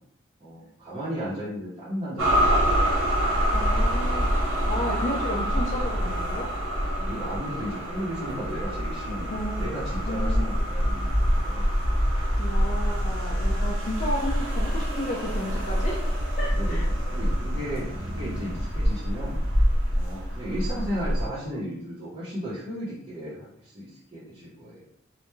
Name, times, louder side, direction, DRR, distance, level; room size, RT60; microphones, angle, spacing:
voice 1, 0.4-2.9 6.8-11.8 16.5-19.4 19.9-24.8, equal, 25° right, -11 dB, 0.7 m, -35 dB
sound 1, 2.2-21.3, equal, 90° right, 0.7 m, -26 dB
voice 2, 3.5-4.3 4.7-6.5 9.3-9.7 10.1-10.5 12.4-16.0 16.3-16.9, left 1 dB, 35° left, -4 dB, 0.3 m, -32 dB
2.2 x 2.0 x 3.0 m, 0.72 s
head